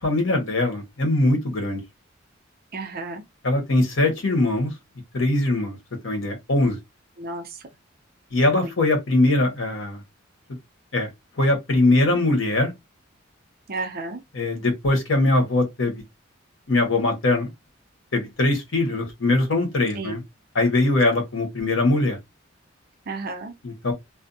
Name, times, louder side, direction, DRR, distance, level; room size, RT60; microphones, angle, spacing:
voice 1, 0.0-1.8 3.4-4.7 5.1-5.8 6.0-6.8 8.3-10.0 10.9-11.1 11.4-12.7 14.3-16.0 16.7-17.5 18.1-20.2 20.5-22.2 23.6-23.9, left 2 dB, 75° left, 1.0 m, -21 dB
voice 2, 2.7-3.2 7.2-7.6 8.5-8.7 13.7-14.2 19.9-20.1 23.1-23.5, right 3 dB, 50° right, 0.5 m, -32 dB
2.5 x 2.1 x 2.6 m
head